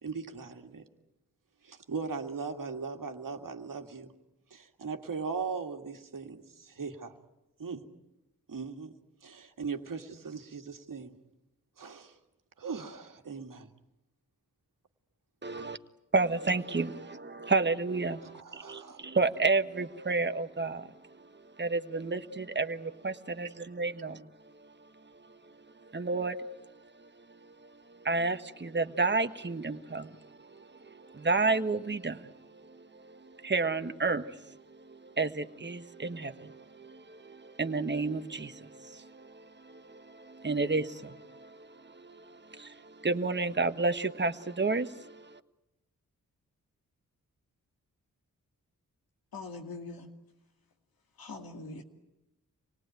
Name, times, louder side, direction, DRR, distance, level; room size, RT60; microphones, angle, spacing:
voice 1, 0.0-0.9 1.6-4.1 4.5-7.1 7.6-7.9 8.5-8.9 9.2-11.1 11.8-12.2 12.6-13.7 18.2-19.1 23.4-23.5, right 5 dB, 65° right, 2.0 m, -39 dB
voice 2, 15.4-15.8 16.1-20.9 21.6-24.3 25.8-26.5 27.5-27.7 28.0-34.6 34.9-45.4, right 3 dB, 30° right, 1.4 m, -31 dB
voice 3, 49.3-50.1 51.2-51.8, left 3 dB, 85° left, 2.5 m, -42 dB
26.5 x 19.0 x 9.2 m
cardioid pair, 45°, 35 cm